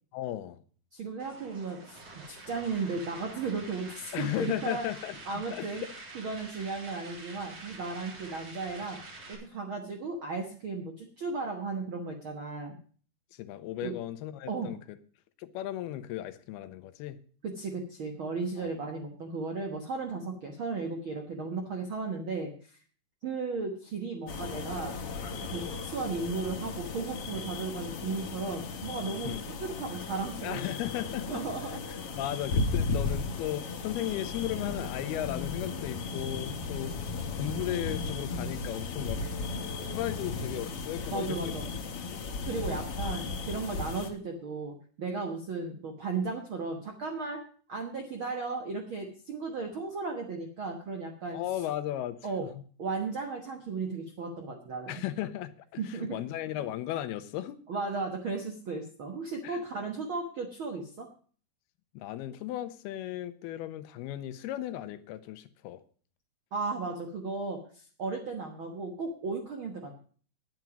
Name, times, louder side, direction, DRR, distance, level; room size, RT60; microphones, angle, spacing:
voice 1, 0.1-0.6 4.1-5.9 13.3-15.0 15.4-17.2 18.6-18.7 29.2-29.5 30.4-31.4 31.9-36.9 37.3-39.2 39.9-41.5 51.3-52.6 54.9-57.6 59.4-59.6 61.9-65.8, left 13 dB, 85° left, 12 dB, 2.8 m, -36 dB
voice 2, 0.9-4.8 5.2-5.8 6.1-9.0 9.3-12.7 13.8-13.9 14.5-14.7 17.4-22.8 23.2-24.9 25.5-29.3 29.6-30.6 31.3-31.8 41.1-41.6 42.4-47.4 47.7-51.4 52.2-52.4 52.8-55.0 55.8-56.2 57.7-61.1 66.5-69.9, right 4 dB, 65° right, 3 dB, 1.2 m, -35 dB
sound 1, 1.2-9.3, right 2 dB, 45° right, 4.4 m, -47 dB
sound 2, 24.3-44.1, left 4 dB, 55° left, 1.7 m, -35 dB
10.5 x 9.2 x 6.0 m, 0.43 s
omnidirectional pair, 4.4 m